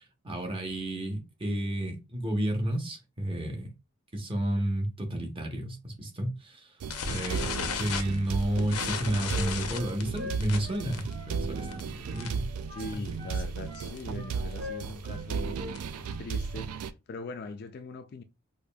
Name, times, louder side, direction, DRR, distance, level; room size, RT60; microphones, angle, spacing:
voice 1, 0.0-3.7 4.1-6.7 7.1-12.5 12.9-13.0, right 1 dB, 25° right, 0.8 m, -31 dB
sound 1, 6.8-16.9, right 5 dB, 80° right, 0.3 m, -35 dB
sound 2, 6.9-12.5 12.8-13.1 13.3-13.4 13.7-14.0 14.5-16.0, left 6 dB, 90° left, 0.6 m, -36 dB
Wind instrument woodwind instrument, 8.8-11.8 12.1-12.4 12.7-15.2 15.5-16.3, left 3 dB, 55° right, 2.1 m, -43 dB
voice 2, 12.7-15.6 16.2-18.2, left 3 dB, 45° left, 0.3 m, -41 dB
4.9 x 2.6 x 2.2 m
head